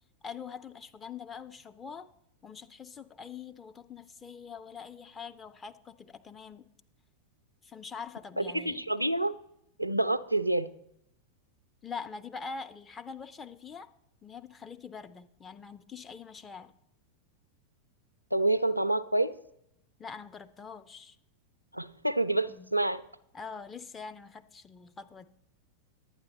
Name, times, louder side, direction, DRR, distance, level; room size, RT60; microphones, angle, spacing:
voice 1, 0.2-2.1 2.4-6.7 7.6-8.8 11.8-13.9 14.2-16.7 20.0-21.2 22.5-22.7 23.3-25.3, left 5 dB, 20° left, 8 dB, 0.5 m, -44 dB
voice 2, 8.4-9.3 9.8-10.7 18.3-19.3 21.7-23.0, right 2 dB, 90° right, 15 dB, 0.4 m, -28 dB
11.0 x 9.0 x 4.2 m, 0.79 s
figure-of-eight pair, 90°, 0 cm